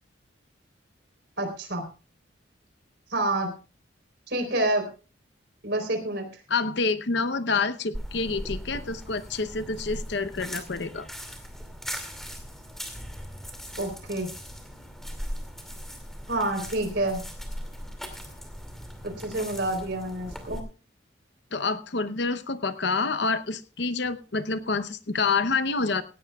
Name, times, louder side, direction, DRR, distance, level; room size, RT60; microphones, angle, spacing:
voice 1, 1.4-1.8 3.1-3.5 4.3-4.8 5.6-6.3 13.8-14.3 16.3-17.2 19.0-20.6, right 1 dB, 60° right, 5 dB, 3.9 m, -28 dB
voice 2, 6.5-11.1 21.5-26.0, left 4 dB, 60° left, 13 dB, 0.8 m, -27 dB
sound 1, 7.9-20.6, equal, ahead, 2.5 m, -39 dB
18.0 x 16.5 x 2.4 m, 0.35 s
head